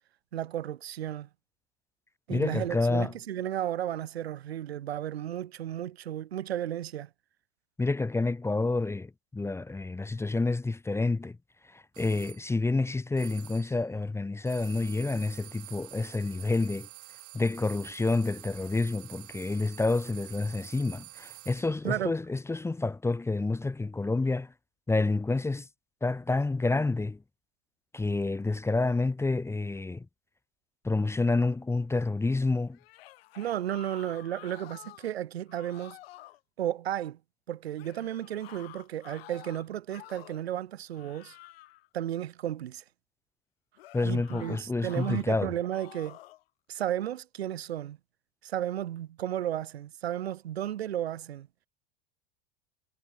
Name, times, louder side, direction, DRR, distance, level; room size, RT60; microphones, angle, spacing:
voice 1, 0.3-1.3 2.3-7.1 21.8-22.1 33.4-36.0 36.6-37.2 37.5-41.4 41.9-42.8 44.0-46.2 46.7-48.0 48.4-51.5, right 11 dB, 90° right, 3.6 m, -33 dB
voice 2, 2.3-3.1 7.8-11.4 11.7-16.9 17.3-24.5 24.9-25.7 26.0-27.2 27.9-30.0 30.8-32.8 43.9-45.5, left 3 dB, 10° left, 1.1 m, -29 dB
sound 1, 11.9-12.4 13.2-13.8 14.4-21.8, right 18 dB, 50° right, 4.4 m, -48 dB
sound 2, 32.7-35.1 35.5-36.4 37.8-40.5 40.9-41.9 43.8-45.3 45.7-46.4, left 17 dB, 75° left, 2.7 m, -50 dB
hypercardioid pair, 110°, 30 cm